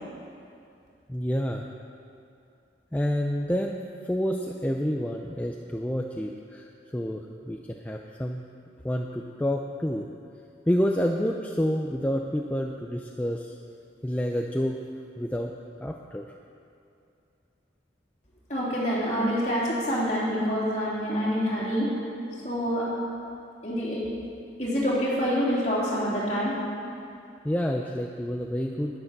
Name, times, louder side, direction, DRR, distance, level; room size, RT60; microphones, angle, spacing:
voice 1, 1.1-1.6 2.9-3.8 4.0-8.4 8.8-10.1 10.7-13.5 14.0-14.8 15.2-15.5 15.8-16.2 27.4-29.0, equal, 10° left, 1 dB, 0.4 m, -28 dB
voice 2, 18.5-21.9 22.4-22.9 23.6-24.1 24.6-26.5, equal, 40° left, -7 dB, 3.3 m, -26 dB
10.5 x 9.9 x 6.6 m, 2.5 s
head